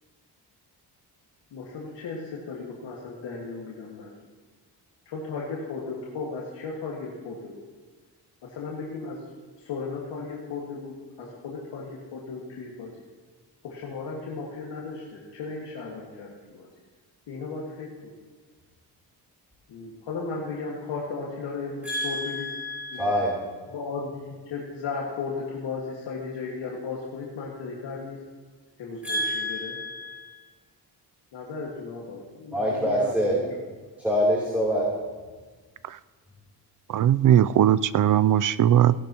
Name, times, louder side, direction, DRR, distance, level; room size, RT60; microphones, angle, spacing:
voice 1, 1.5-4.1 5.1-7.6 8.4-9.2 9.6-13.0 13.6-16.7 17.3-18.2 19.7-22.5 22.9-23.1 23.7-28.2 28.8-29.8 31.3-33.5, left 4 dB, 90° left, -4 dB, 1.9 m, -35 dB
voice 2, 21.8-23.4 29.0-30.3 32.5-33.4 34.0-34.9, equal, 5° right, -6 dB, 3.2 m, -26 dB
voice 3, 36.9-38.9, right 10 dB, 50° right, 16 dB, 0.5 m, -19 dB
17.5 x 11.5 x 3.0 m, 1.4 s
cardioid pair, 85°, 41 cm